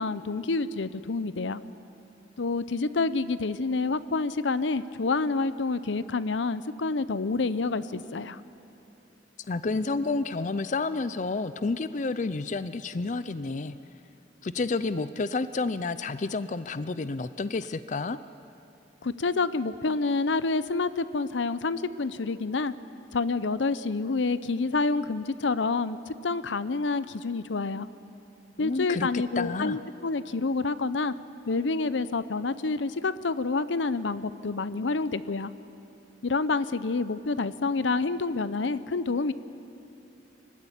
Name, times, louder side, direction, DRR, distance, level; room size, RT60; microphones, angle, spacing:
voice 1, 0.0-1.6 2.4-8.4 19.0-22.7 23.1-27.9 28.6-31.1 31.5-35.5 36.2-39.3, left 3 dB, 85° left, 15 dB, 0.7 m, -28 dB
voice 2, 9.5-13.8 14.4-18.2 28.6-29.1 29.4-29.8, left 3 dB, 40° left, 13 dB, 0.5 m, -30 dB
24.5 x 16.0 x 10.0 m, 2.8 s
head